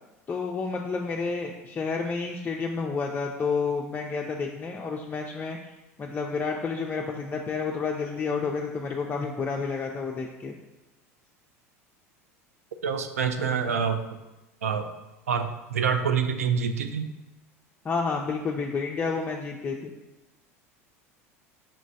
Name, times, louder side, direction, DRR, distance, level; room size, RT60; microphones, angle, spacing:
voice 1, 0.3-5.7 6.0-10.6 17.8-19.9, left 4 dB, 25° left, -1 dB, 0.4 m, -30 dB
voice 2, 12.8-14.0 14.6-14.9 15.3-17.1, right 6 dB, 80° right, 7 dB, 0.4 m, -26 dB
5.5 x 3.0 x 2.6 m, 1.0 s
hypercardioid pair, 75°, 8 cm